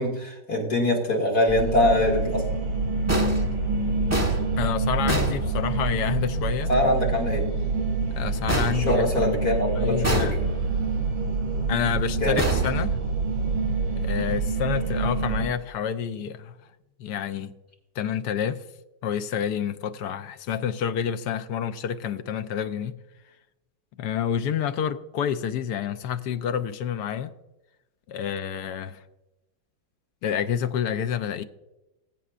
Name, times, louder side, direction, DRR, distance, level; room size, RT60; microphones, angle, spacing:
voice 1, 0.0-2.4 6.7-7.4 8.7-10.4 12.2-12.4, left 1 dB, 50° left, 2.8 m, -23 dB
sound 1, 1.5-15.4, right 3 dB, 65° right, 4.2 m, -26 dB
sound 2, 3.1-6.1 8.5-9.6 10.0-10.9 12.4-13.5, right 2 dB, 10° right, 0.9 m, -29 dB
voice 2, 4.6-6.7 8.1-9.1 9.7-10.4 11.7-13.0 14.0-16.5 17.0-17.5 18.0-18.6 19.0-23.0 24.0-27.3 28.1-29.0 30.2-31.4, left 8 dB, 70° left, 1.1 m, -28 dB
21.0 x 8.4 x 2.5 m
omnidirectional pair, 2.0 m